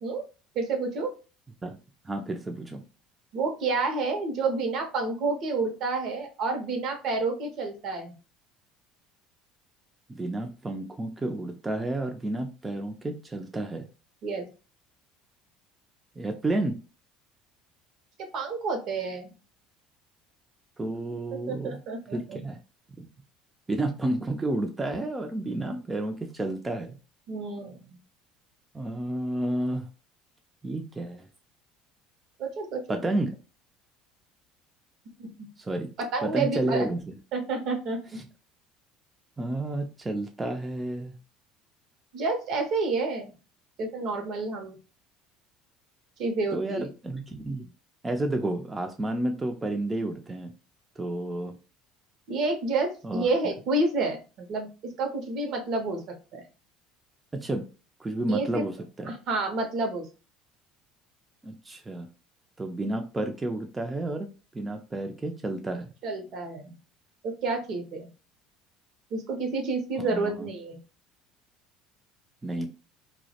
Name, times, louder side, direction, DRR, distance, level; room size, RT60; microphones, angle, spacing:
voice 1, 0.5-1.1 3.3-8.1 14.2-14.5 18.3-19.3 21.5-22.4 27.3-28.0 32.4-32.8 35.2-35.5 36.0-36.9 37.3-38.0 42.1-43.4 43.8-44.8 46.2-46.9 52.3-56.4 58.3-58.6 59.1-60.1 66.0-66.8 67.2-68.1 69.1-70.8, right 3 dB, 60° right, 5 dB, 0.6 m, -29 dB
voice 2, 2.0-2.8 10.1-13.9 16.2-16.8 20.8-21.8 22.1-22.6 22.9-23.1 23.7-27.0 28.7-29.9 30.6-31.3 32.9-33.3 35.6-35.9 36.2-37.1 38.2-38.3 39.4-41.1 46.5-47.7 48.0-50.5 51.0-51.6 53.0-53.5 57.3-57.7 58.0-59.1 61.4-62.1 62.6-64.3 64.5-65.9 70.0-70.5 72.4-72.7, right 2 dB, 20° right, 4 dB, 0.4 m, -31 dB
2.1 x 2.0 x 2.8 m, 0.33 s
hypercardioid pair, 70°, 0 cm